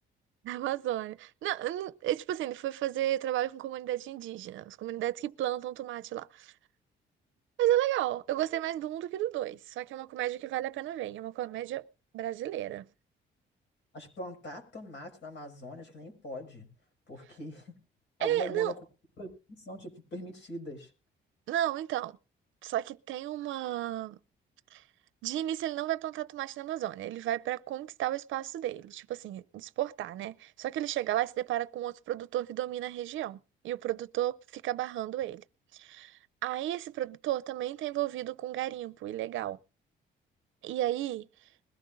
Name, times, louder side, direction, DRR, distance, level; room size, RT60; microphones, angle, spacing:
voice 1, 0.4-6.5 7.6-11.8 12.1-12.9 18.2-18.7 21.5-22.2 22.6-24.2 24.7-24.8 25.2-33.4 33.6-35.4 35.7-39.6 40.6-41.3, right 13 dB, 80° right, 0.5 m, -33 dB
voice 2, 13.9-16.7 17.1-17.7 18.2-18.7 19.2-20.9, left 1 dB, 65° left, 5.8 m, -42 dB
21.0 x 14.0 x 2.6 m
cardioid pair, 90°, 20 cm